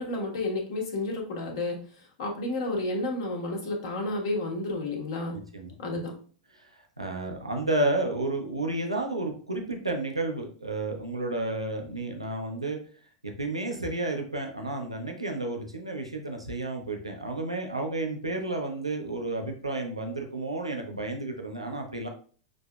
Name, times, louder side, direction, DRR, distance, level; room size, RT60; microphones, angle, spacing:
voice 1, 0.0-5.4 5.8-6.1, left 2 dB, 55° left, 1 dB, 1.2 m, -31 dB
voice 2, 6.5-12.8 13.2-22.1, right 2 dB, 85° right, 2 dB, 0.6 m, -31 dB
6.0 x 2.7 x 2.3 m, 0.43 s
figure-of-eight pair, 90°, 3 cm